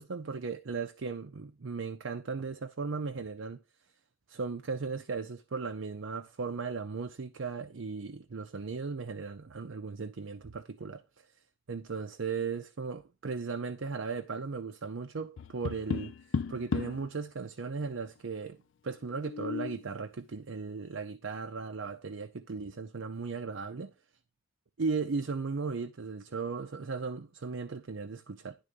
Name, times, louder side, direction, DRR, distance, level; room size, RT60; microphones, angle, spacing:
voice 1, 0.0-3.6 4.3-11.0 11.7-16.1 16.5-18.6 18.8-23.9 24.8-28.5, right 4 dB, 75° right, 0.6 m, -36 dB
Tap, 15.4-17.1 19.1-19.8, left 5 dB, 65° left, 0.4 m, -34 dB
11.0 x 3.8 x 5.2 m
head